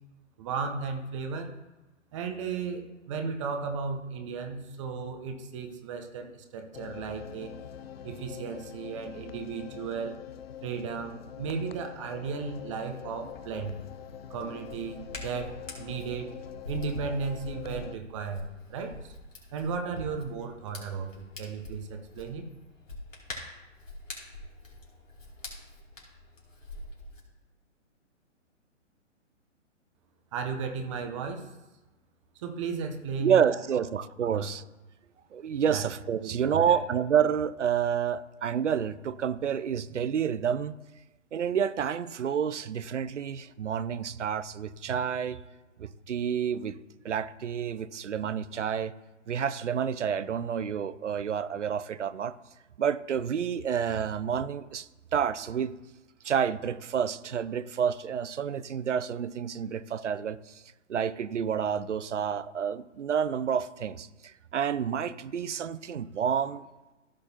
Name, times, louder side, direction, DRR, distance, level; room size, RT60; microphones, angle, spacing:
voice 1, 0.4-1.5 2.1-7.5 8.0-10.1 10.6-13.7 14.3-16.3 16.7-18.4 18.7-19.1 19.5-22.5 30.3-31.5 32.4-33.4 33.7-33.8 34.3-34.5 35.7-35.9 36.2-36.8, right 5 dB, 25° right, 5 dB, 0.8 m, -35 dB
sound 1, 6.7-18.0, left 9 dB, 50° left, 0.5 m, -44 dB
Hands, 13.2-27.2, left 2 dB, 85° left, 3.0 m, -45 dB
voice 2, 33.2-34.6 35.3-40.8 41.3-45.4 45.8-46.8 47.0-48.9 49.3-52.3 52.8-55.8 56.2-60.6 60.9-66.7, right 8 dB, 70° right, 16 dB, 0.6 m, -29 dB
15.0 x 6.4 x 2.9 m, 1.1 s
figure-of-eight pair, 125°, 38 cm